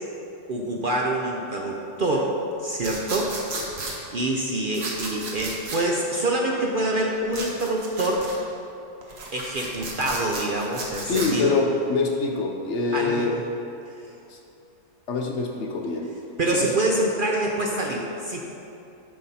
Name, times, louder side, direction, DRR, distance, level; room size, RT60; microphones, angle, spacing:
voice 1, 0.5-2.3 2.6-3.3 4.1-8.3 9.3-11.5 12.9-13.3 16.4-18.5, right 1 dB, 65° right, -1 dB, 0.5 m, -26 dB
sound 1, 2.8-4.0 4.7-5.8 7.3-8.4 9.0-11.3, right 2 dB, 45° right, 1.2 m, -34 dB
voice 2, 11.1-13.4 14.3-14.4 15.1-16.1 16.6-16.7, left 4 dB, 60° left, 2 dB, 0.8 m, -25 dB
9.4 x 5.9 x 4.1 m, 2.8 s
omnidirectional pair, 1.7 m